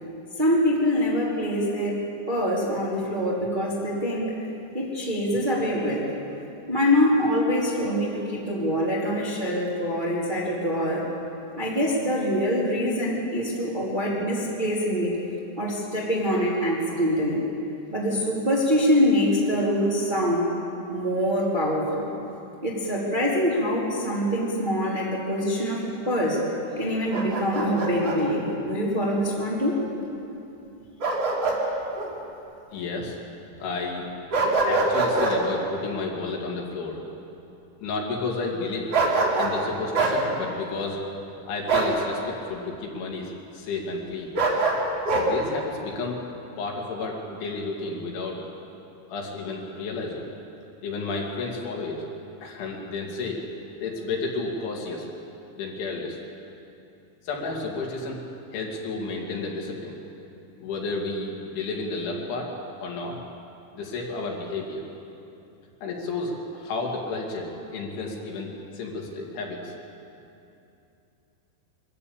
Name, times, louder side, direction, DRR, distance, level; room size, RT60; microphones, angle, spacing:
voice 1, 0.4-2.0 2.3-4.3 4.7-6.1 6.7-11.1 11.6-15.1 15.6-17.4 17.9-20.5 20.9-22.0 22.6-26.4 26.8-29.8, equal, 15° right, -6 dB, 2.3 m, -24 dB
Bark, 27.1-28.2 31.0-31.6 32.0-32.1 34.3-35.4 38.9-39.6 39.9-40.2 41.7-42.0 44.3-45.3, right 3 dB, 35° right, 3.5 m, -23 dB
voice 2, 32.7-33.2 33.6-34.1 34.6-37.0 37.8-38.9 39.4-41.0 41.5-44.3 45.1-46.2 46.6-48.5 49.1-50.4 50.8-52.0 52.4-53.4 53.8-55.1 55.6-56.2 57.2-58.2 58.5-60.0 60.6-62.5 62.8-63.2 63.7-64.8 65.8-69.7, left 3 dB, 75° left, -1 dB, 4.7 m, -31 dB
24.0 x 14.0 x 8.6 m, 2.8 s
omnidirectional pair, 5.5 m